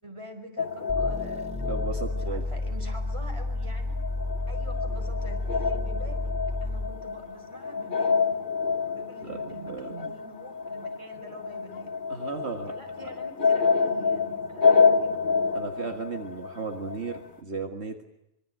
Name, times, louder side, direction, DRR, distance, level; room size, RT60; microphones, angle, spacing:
voice 1, 0.0-1.5 2.1-3.9 4.5-6.3 6.6-8.4 8.9-11.9 12.7-15.2, right 1 dB, 25° right, 5 dB, 4.8 m, -45 dB
sound 1, 0.6-3.1 3.4-17.3, left 5 dB, 50° left, 1.3 m, -28 dB
sound 2, 0.9-7.1, left 2 dB, 5° right, 3.9 m, -31 dB
voice 2, 1.7-2.5 9.2-10.1 12.1-12.7 15.5-18.1, right 4 dB, 70° right, 5 dB, 2.0 m, -35 dB
25.0 x 24.0 x 9.2 m, 0.82 s
omnidirectional pair, 1.2 m